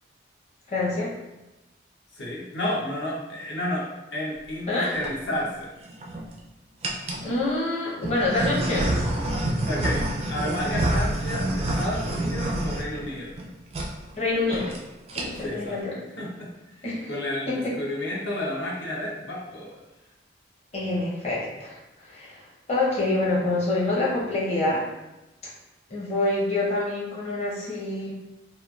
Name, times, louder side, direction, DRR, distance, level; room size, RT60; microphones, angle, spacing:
voice 1, 0.7-1.1 4.7-5.0 7.2-9.0 14.1-14.7 15.1-15.9 16.8-17.1 17.5-17.7 20.7-24.8 25.9-28.1, left 2 dB, 35° left, -6 dB, 0.7 m, -26 dB
voice 2, 2.1-3.9 4.1-5.7 9.4-13.4 15.4-15.8 16.2-16.5 17.1-19.8, left 1 dB, 65° left, -3 dB, 0.7 m, -31 dB
sound 1, 4.7-5.1 5.8-6.3 6.8-7.3 8.0-13.4 13.7-13.9 14.2-14.3 14.5-14.8 15.1-15.5, right 1 dB, 30° right, 0.4 m, -27 dB
3.0 x 2.3 x 2.3 m, 1.0 s
head